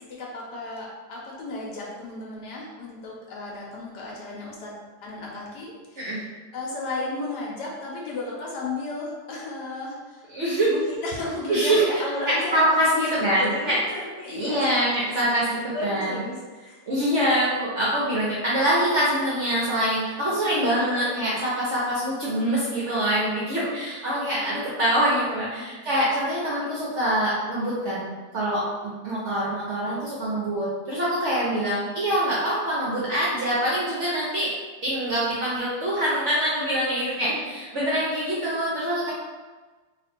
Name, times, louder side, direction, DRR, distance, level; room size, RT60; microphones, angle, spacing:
voice 1, 0.1-4.7 5.0-6.1 6.5-10.2 10.7-12.6 12.9-13.0 13.4-15.1 15.7-16.9 20.5-21.2 25.1-25.2 25.7-25.8 31.5-31.7 37.7-37.8, left 2 dB, 70° left, -3 dB, 1.3 m, -34 dB
voice 2, 10.3-10.7 11.5-11.8 12.3-13.8 14.3-16.2 16.9-34.5 34.8-39.1, right 1 dB, 55° right, -7 dB, 0.8 m, -24 dB
3.1 x 2.5 x 4.3 m, 1.3 s
omnidirectional pair, 2.0 m